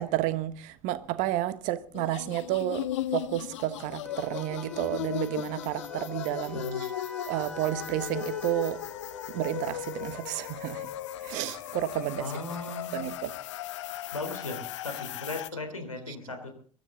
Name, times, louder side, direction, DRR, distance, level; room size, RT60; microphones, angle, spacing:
voice 1, 0.0-2.9 3.1-6.6 7.3-8.8 9.3-10.9 11.2-12.2 12.9-13.3, right 14 dB, 50° right, 1.2 m, -31 dB
sound 1, 1.9-15.5, left 13 dB, 60° left, 0.8 m, -37 dB
Wind instrument woodwind instrument, 4.0-10.4, left 1 dB, 5° left, 1.5 m, -47 dB
voice 2, 6.5-6.8 12.1-13.0 14.1-16.5, left 2 dB, 85° left, 3.5 m, -37 dB
22.5 x 13.0 x 3.8 m
figure-of-eight pair, 75°, 17 cm